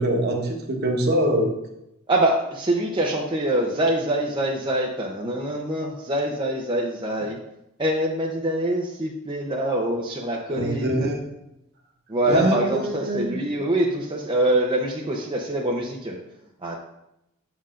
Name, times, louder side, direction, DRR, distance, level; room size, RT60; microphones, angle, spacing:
voice 1, 0.0-1.5 10.5-11.3 12.3-13.4, right 1 dB, 50° right, 2 dB, 1.1 m, -24 dB
voice 2, 2.1-7.4 7.8-11.1 12.1-16.2 16.6-16.8, right 1 dB, 25° right, -2 dB, 0.7 m, -24 dB
7.6 x 6.9 x 2.5 m, 0.85 s
head